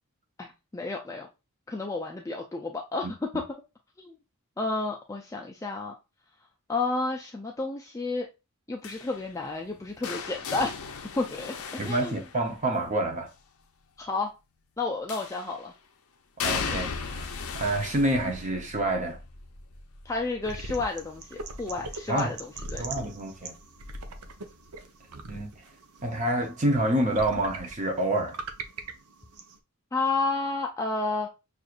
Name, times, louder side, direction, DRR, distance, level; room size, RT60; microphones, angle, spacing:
voice 1, 0.4-1.3 1.7-3.2 4.0-4.2 4.6-5.9 6.7-8.3 8.7-10.7 11.2-12.2 14.0-14.3 14.8-15.7 20.0-22.8 29.9-31.3, left 3 dB, 15° left, 0.4 m, -31 dB
sound 1, 8.8-12.9 15.1-15.7 16.4-22.2 22.6-23.0 24.2-24.3, left 5 dB, 75° left, 0.6 m, -37 dB
voice 2, 11.8-13.3 16.4-19.2 22.1-22.3 22.8-23.5 25.3-25.5 26.0-28.4, right 1 dB, 35° right, 0.7 m, -28 dB
sound 2, 20.4-29.6, right 3 dB, 80° right, 0.7 m, -42 dB
6.2 x 2.5 x 2.4 m
head